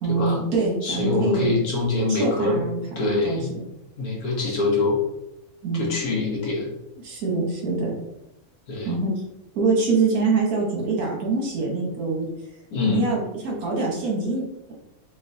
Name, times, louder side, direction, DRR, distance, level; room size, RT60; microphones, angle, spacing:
voice 1, 0.0-1.5 2.1-2.8 3.2-3.4 5.6-5.9 7.0-7.9 8.8-9.1 9.5-12.3 12.9-14.7, right 3 dB, 70° right, -1 dB, 1.5 m, -24 dB
voice 2, 0.8-2.6 3.0-3.6 4.0-5.0 5.7-6.7 8.7-8.9 12.7-13.0, left 3 dB, 70° left, -2 dB, 1.5 m, -24 dB
3.9 x 3.7 x 2.7 m, 0.88 s
omnidirectional pair, 1.6 m